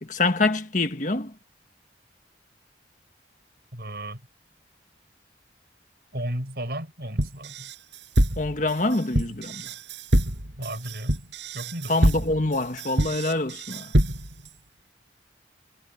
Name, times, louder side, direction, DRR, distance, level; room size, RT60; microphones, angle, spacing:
voice 1, 0.0-1.3 8.4-9.7 11.9-13.9, left 2 dB, 45° left, 1.7 m, -25 dB
voice 2, 3.7-4.2 6.1-7.7 10.6-11.2 11.5-12.0, right 1 dB, 60° right, 6.3 m, -34 dB
sound 1, 7.2-14.5, right 1 dB, 80° right, 5.7 m, -25 dB
head